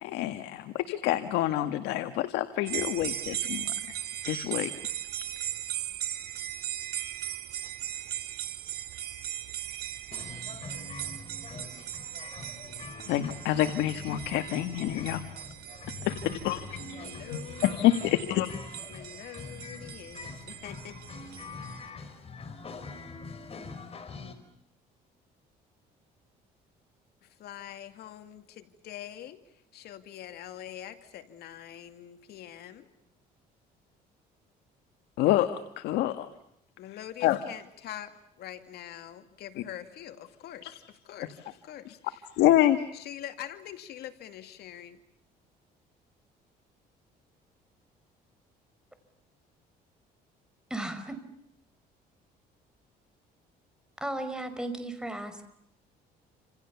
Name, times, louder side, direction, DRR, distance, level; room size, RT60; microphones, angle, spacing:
voice 1, 0.0-3.7 4.3-4.7 13.0-15.2 16.0-18.8 35.2-36.3 37.2-37.4 42.4-42.8, left 13 dB, 90° left, 9 dB, 1.7 m, -27 dB
sound 1, 2.7-21.9, right 12 dB, 70° right, 2.4 m, -38 dB
sound 2, 10.1-24.3, left 4 dB, 35° left, 4.9 m, -44 dB
voice 2, 16.9-18.6 18.9-21.0 27.2-32.9 36.8-42.3 42.9-45.0, left 11 dB, 70° left, 8 dB, 2.4 m, -44 dB
voice 3, 50.7-51.2 54.0-55.4, right 1 dB, 5° right, 9 dB, 5.0 m, -35 dB
29.0 x 27.5 x 7.1 m, 0.78 s
cardioid pair, 110°, 17 cm